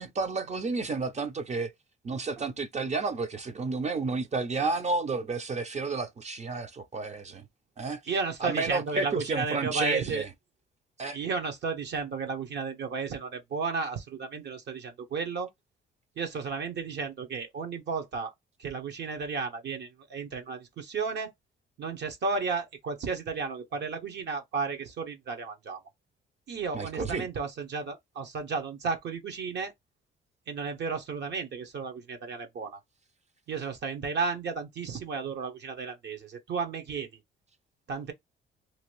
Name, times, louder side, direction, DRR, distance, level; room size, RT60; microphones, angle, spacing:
voice 1, 0.0-1.7 2.0-7.4 7.8-8.0 8.4-10.3 11.0-11.2 26.7-27.3, right 3 dB, 35° right, 0.6 m, -31 dB
voice 2, 8.1-10.2 11.1-15.5 16.2-18.3 18.6-21.3 21.8-25.8 26.5-29.7 30.5-32.8 33.5-37.1 37.9-38.1, right 5 dB, 60° right, 1.0 m, -33 dB
2.9 x 2.5 x 3.0 m
cardioid pair, 90°, 20 cm